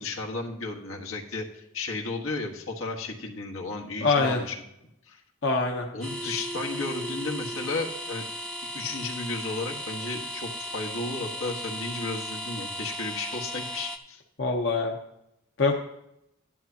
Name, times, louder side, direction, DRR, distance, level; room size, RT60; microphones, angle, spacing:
voice 1, 0.0-4.6 5.1-5.2 5.9-8.2 8.7-14.2, left 3 dB, 85° left, 0 dB, 1.5 m, -34 dB
voice 2, 4.0-4.4 5.4-5.9 14.4-15.0 15.6-15.7, left 3 dB, 60° left, 0 dB, 0.9 m, -24 dB
sound 1, 6.0-14.0, equal, 5° left, 0.5 m, -36 dB
11.5 x 11.0 x 2.8 m, 0.81 s
head